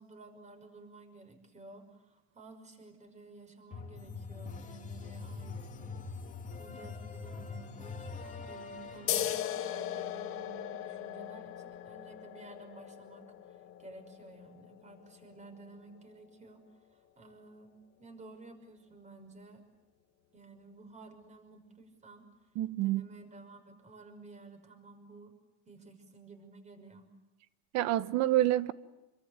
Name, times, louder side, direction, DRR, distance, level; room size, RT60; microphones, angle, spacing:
voice 1, 0.0-6.0 6.6-16.6 16.9-19.6 20.3-22.5 22.8-25.3 25.7-27.1, right 3 dB, 20° right, 5.7 m, -53 dB
sound 1, 3.7-9.3, left 4 dB, 25° left, 2.4 m, -43 dB
sound 2, 9.1-16.2, left 11 dB, 40° left, 2.0 m, -39 dB
voice 2, 22.6-23.0 27.7-28.7, right 14 dB, 50° right, 1.3 m, -27 dB
27.5 x 24.0 x 9.1 m
supercardioid pair, 135°, 33 cm